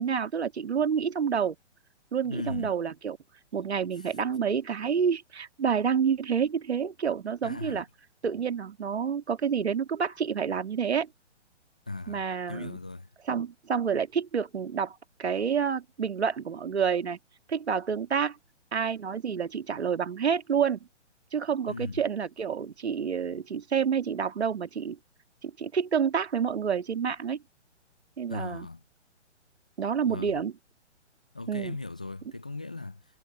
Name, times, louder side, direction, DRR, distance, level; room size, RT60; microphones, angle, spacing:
voice 1, 0.0-1.6 2.1-3.2 3.5-7.8 8.2-11.1 12.1-12.8 13.3-17.2 17.5-18.4 18.7-20.8 21.3-25.0 25.4-27.4 28.2-28.7 29.8-30.5 31.5-31.8, right 7 dB, 60° right, 2.2 m, -28 dB
voice 2, 2.2-2.7 4.0-4.1 7.4-7.8 11.9-13.1 21.7-22.0 28.3-28.8 30.0-30.4 31.3-33.0, left 3 dB, 5° left, 0.3 m, -38 dB
figure-of-eight pair, 125°, 36 cm